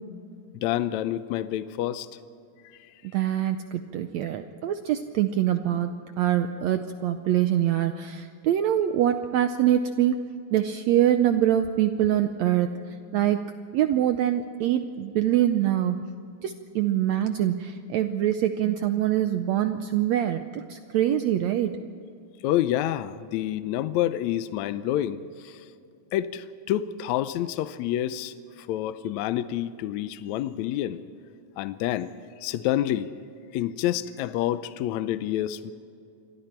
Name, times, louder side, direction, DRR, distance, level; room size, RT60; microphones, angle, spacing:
voice 1, 0.6-2.1 22.4-25.2 25.4-25.6 26.1-31.0 31.6-32.1 32.4-33.1 33.5-35.7, left 12 dB, 85° left, 13 dB, 1.6 m, -28 dB
voice 2, 3.1-10.2 10.5-12.7 13.1-13.4 13.7-16.0 16.4-21.8, right 11 dB, 85° right, 8 dB, 1.5 m, -24 dB
28.0 x 23.5 x 4.5 m, 2.6 s
omnidirectional pair, 4.0 m